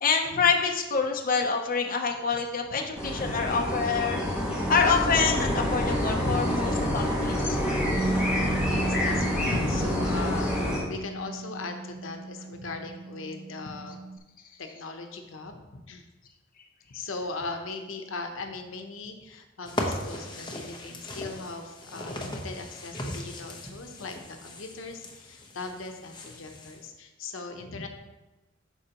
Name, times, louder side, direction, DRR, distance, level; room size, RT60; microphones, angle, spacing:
voice 1, 0.0-4.2 4.7-7.0 7.5-7.6, left 5 dB, 45° left, 1 dB, 0.7 m, -26 dB
sound 1, 2.9-10.8, left 1 dB, 5° right, 1.9 m, -27 dB
voice 2, 5.4-5.8 6.2-6.5 6.8-7.1 8.6-14.0 14.6-16.0 16.9-27.9, left 3 dB, 85° left, 5 dB, 0.8 m, -38 dB
Bass guitar, 7.9-14.2, right 2 dB, 60° right, 0.9 m, -36 dB
sound 2, 19.6-26.8, left 1 dB, 25° left, 0.9 m, -38 dB
12.0 x 4.5 x 2.9 m, 1.1 s
head